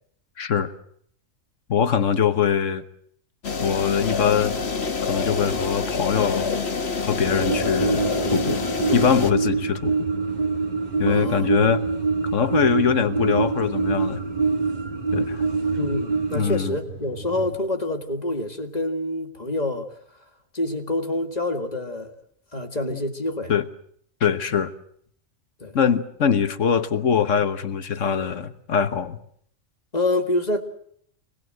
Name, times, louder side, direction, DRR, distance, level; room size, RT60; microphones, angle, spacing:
voice 1, 0.4-0.7 1.7-2.8 3.6-4.6 5.0-6.5 7.1-8.0 8.3-8.6 8.9-10.1 11.0-11.8 12.3-14.2 15.1-15.4 16.3-16.8 22.9-23.0 23.5-23.6 24.2-24.7 25.7-29.2, left 7 dB, 70° left, 11 dB, 1.5 m, -22 dB
sound 1, 3.4-9.3, left 4 dB, 55° left, 1.7 m, -27 dB
sound 2, 7.2-17.6, right 4 dB, 65° right, 7.0 m, -39 dB
sound 3, 7.4-16.5, right 4 dB, 35° right, 1.4 m, -25 dB
voice 2, 11.1-11.6 15.7-19.9 20.5-22.1 22.5-23.5 25.6-25.8 29.9-30.6, left 2 dB, 30° left, 5 dB, 2.2 m, -27 dB
25.5 x 19.0 x 7.8 m, 0.66 s
omnidirectional pair, 1.3 m